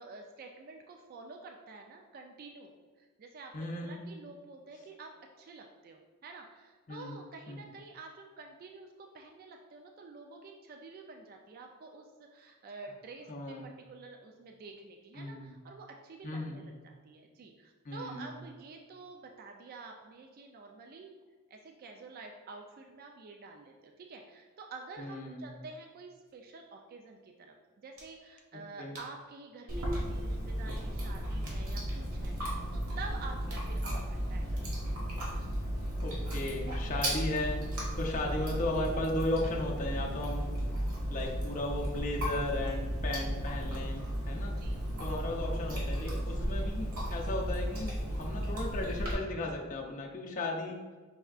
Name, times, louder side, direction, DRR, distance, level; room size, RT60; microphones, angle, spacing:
voice 1, 0.0-2.7 3.0-13.6 13.9-21.1 21.5-34.4 44.6-44.8, right 3 dB, 45° right, 3 dB, 0.3 m, -49 dB
voice 2, 3.5-4.0 6.9-7.2 7.5-7.6 13.3-13.7 15.1-15.5 16.2-16.6 17.8-18.3 25.0-25.5 28.5-29.0 36.0-40.5 41.1-44.6 45.0-50.8, left 1 dB, 35° left, -1 dB, 0.5 m, -36 dB
sound 1, 26.3-26.4 27.9-28.2 28.9-29.2 29.9-30.1 30.8-30.9 31.4-31.7 32.2-32.4 32.9-33.0 33.5-33.7 34.6-34.7, right 1 dB, 70° right, 1.4 m, -53 dB
Chewing mastication, 29.7-49.1, equal, 90° right, 1.4 m, -34 dB
5.4 x 3.4 x 2.4 m, 1.5 s
head